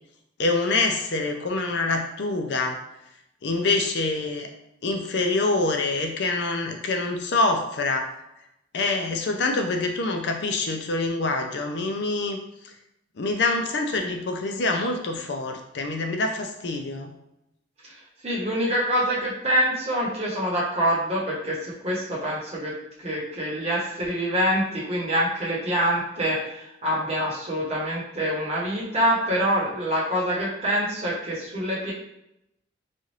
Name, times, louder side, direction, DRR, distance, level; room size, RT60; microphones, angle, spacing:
voice 1, 0.4-2.8 3.4-4.5 4.8-8.1 8.7-12.4 13.2-17.1, left 3 dB, 60° left, 4 dB, 0.4 m, -25 dB
voice 2, 18.2-22.7 23.0-31.9, equal, 30° right, -6 dB, 1.0 m, -25 dB
4.1 x 2.4 x 3.2 m, 0.84 s
head